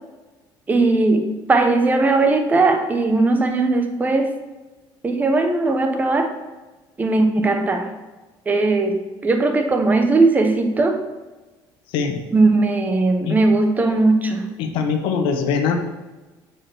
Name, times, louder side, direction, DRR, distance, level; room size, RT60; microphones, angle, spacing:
voice 1, 0.7-4.4 5.0-6.3 7.0-7.9 8.5-11.0 12.3-14.5, right 3 dB, 20° right, 5 dB, 0.9 m, -18 dB
voice 2, 11.9-12.2 13.2-13.4 14.6-15.8, left 6 dB, 75° left, 5 dB, 1.2 m, -22 dB
6.8 x 4.9 x 6.1 m, 1.2 s
cardioid pair, 140°, 9 cm